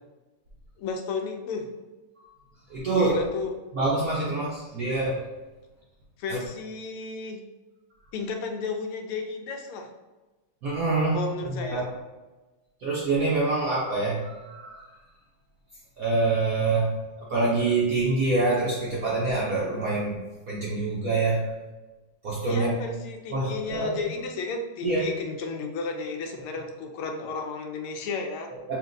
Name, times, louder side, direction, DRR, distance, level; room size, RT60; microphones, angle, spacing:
voice 1, 0.8-1.7 2.9-3.6 6.2-7.4 8.1-9.9 11.1-11.9 22.5-28.5, left 4 dB, 90° left, 4 dB, 1.5 m, -33 dB
voice 2, 2.7-3.2 3.7-5.2 6.3-6.4 10.6-11.8 12.8-14.8 16.0-20.2 20.5-21.5 22.2-22.8 23.3-23.9 24.8-25.1 28.7-28.8, right 3 dB, 70° right, -5 dB, 0.8 m, -26 dB
5.8 x 2.5 x 2.6 m, 1.2 s
omnidirectional pair, 2.3 m